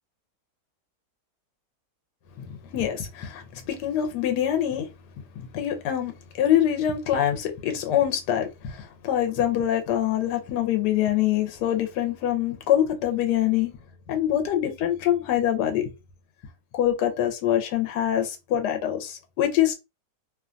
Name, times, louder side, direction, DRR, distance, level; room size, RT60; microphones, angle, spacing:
voice 1, 2.4-4.9 5.4-6.1 6.4-13.7 14.1-15.9 16.7-19.7, left 11 dB, 85° left, 1.2 m, -24 dB
2.8 x 2.2 x 2.5 m
omnidirectional pair, 1.8 m